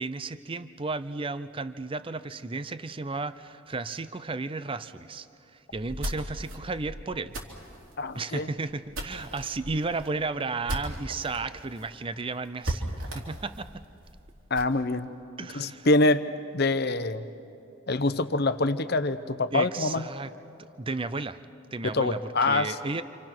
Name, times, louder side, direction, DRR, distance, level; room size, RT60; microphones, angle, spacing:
voice 1, 0.0-5.3 5.5-7.3 8.1-13.8 15.4-15.9 19.5-20.3 20.6-21.4 21.7-23.0, right 3 dB, 25° right, 13 dB, 0.6 m, -33 dB
sound 1, 5.7-11.4 11.8-11.9 12.1-12.2 12.6-14.8, right 1 dB, 75° right, 3.2 m, -37 dB
voice 2, 8.0-8.5 14.5-15.1 15.5-16.2 16.5-17.2 17.9-20.1 21.9-22.7, left 2 dB, 50° left, 12 dB, 0.9 m, -25 dB
28.5 x 27.0 x 6.1 m, 2.6 s
head